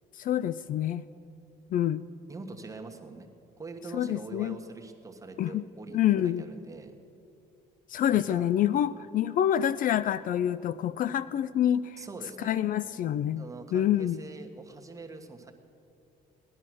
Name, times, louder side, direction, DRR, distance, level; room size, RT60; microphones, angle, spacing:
voice 1, 0.2-1.0 1.7-2.1 3.9-4.6 5.4-5.6 5.9-6.4 7.9-12.0 12.4-13.5 13.7-14.2, left 11 dB, 55° left, 16 dB, 0.4 m, -27 dB
voice 2, 2.3-3.3 3.6-6.9 8.1-8.5 12.0-12.6 13.4-15.5, right 3 dB, 20° right, 3 dB, 1.4 m, -44 dB
17.5 x 11.0 x 6.2 m, 2.6 s
cardioid pair, 110°, 17 cm